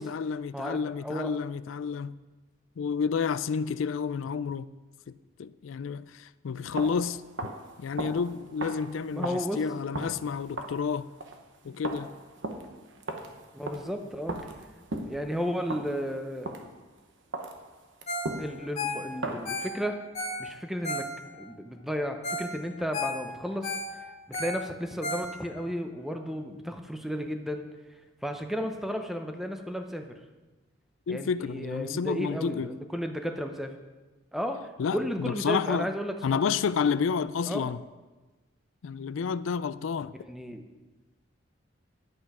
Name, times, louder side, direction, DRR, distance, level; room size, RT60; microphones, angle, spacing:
voice 1, 0.0-2.1 2.8-4.7 5.4-7.2 7.8-11.1 11.6-12.1 31.1-32.7 34.8-35.9 36.2-37.8 38.8-40.1, left 6 dB, 85° left, 0.4 m, -30 dB
voice 2, 0.5-1.3 9.1-9.8 13.5-14.4 15.1-16.6 18.4-20.0 20.4-21.1 21.4-23.8 24.3-30.2 31.1-33.8 34.3-36.4 37.5-37.7 40.3-40.6, equal, ahead, 0.7 m, -33 dB
sound 1, 6.6-16.9 17.3-19.6, right 2 dB, 70° right, 1.0 m, -39 dB
Ringtone, 18.1-18.4 18.6-21.5 21.9-22.0 22.2-22.5 22.8-25.7 26.1-26.2, left 1 dB, 35° left, 1.5 m, -34 dB
10.5 x 8.5 x 4.9 m
head